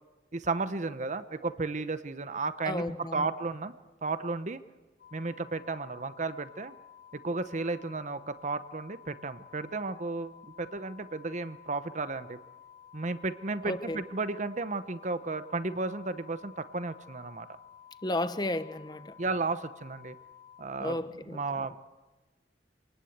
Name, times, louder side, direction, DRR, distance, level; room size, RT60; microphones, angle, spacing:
voice 1, 0.3-2.9 3.1-3.7 4.0-4.6 5.1-6.7 7.2-12.4 12.9-17.5 19.2-20.2 20.6-21.0 21.3-21.8, right 3 dB, 40° right, 0.9 m, -33 dB
voice 2, 2.6-3.3 13.6-14.0 18.0-19.2 20.8-21.4, left 1 dB, 25° left, 1.0 m, -33 dB
sound 1, 5.0-20.6, left 9 dB, 55° left, 4.1 m, -53 dB
26.5 x 19.5 x 8.1 m
head